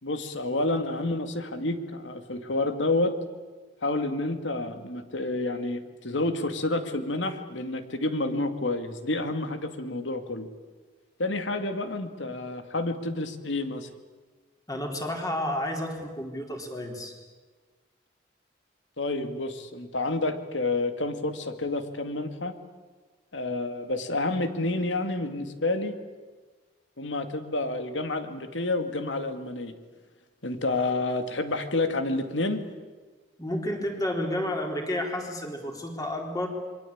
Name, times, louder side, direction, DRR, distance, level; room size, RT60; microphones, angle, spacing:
voice 1, 0.0-3.1 3.8-10.5 11.2-13.9 19.0-22.5 23.3-25.9 27.0-29.8 30.4-32.6, left 2 dB, 85° left, 8 dB, 2.2 m, -29 dB
voice 2, 14.7-17.1 33.4-36.5, left 1 dB, 20° left, 2 dB, 4.0 m, -31 dB
27.5 x 23.0 x 8.7 m, 1.3 s
head